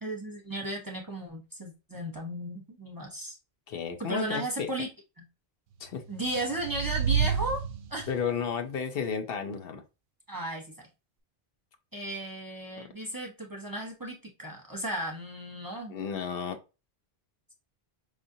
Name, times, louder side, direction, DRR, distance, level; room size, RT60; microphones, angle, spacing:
voice 1, 0.0-3.4 4.0-4.9 5.2-5.3 6.1-7.6 7.9-8.1 10.3-10.9 11.9-16.0, right 1 dB, 20° right, -1 dB, 0.7 m, -35 dB
voice 2, 3.7-4.7 5.8-6.0 8.1-9.8 12.8-12.9 15.9-16.6, left 6 dB, 65° left, 6 dB, 0.8 m, -33 dB
sound 1, 6.0-8.4, right 7 dB, 60° right, 0.7 m, -30 dB
5.0 x 2.5 x 2.6 m, 0.29 s
omnidirectional pair, 1.1 m